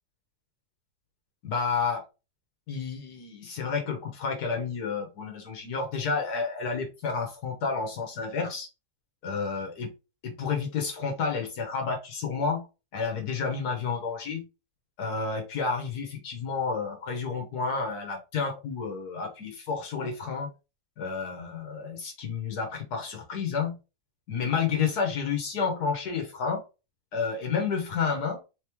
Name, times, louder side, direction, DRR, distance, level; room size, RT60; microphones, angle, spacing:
voice 1, 1.4-2.0 2.7-8.7 9.2-9.9 10.2-12.7 12.9-14.4 15.0-20.5 21.0-23.8 24.3-26.6 27.1-28.4, left 5 dB, 80° left, 2 dB, 1.6 m, -30 dB
4.1 x 3.0 x 3.4 m, 0.29 s
omnidirectional pair, 1.6 m